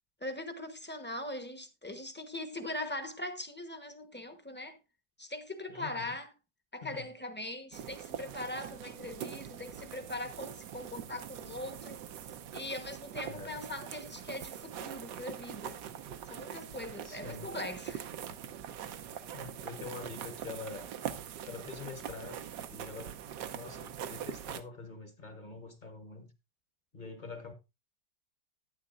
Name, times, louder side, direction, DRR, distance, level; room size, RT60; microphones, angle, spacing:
voice 1, 0.2-4.8 5.2-6.3 6.7-12.0 12.5-15.8 16.3-18.1, left 1 dB, 10° left, 0.6 m, -41 dB
voice 2, 5.7-6.2 6.8-7.1 13.2-13.6 17.0-17.5 19.3-20.9 21.4-23.2 23.5-26.3 26.9-27.5, left 4 dB, 35° left, 0.9 m, -45 dB
sound 1, 7.7-24.6, right 9 dB, 90° right, 1.4 m, -43 dB
11.5 x 9.5 x 2.4 m
omnidirectional pair, 1.8 m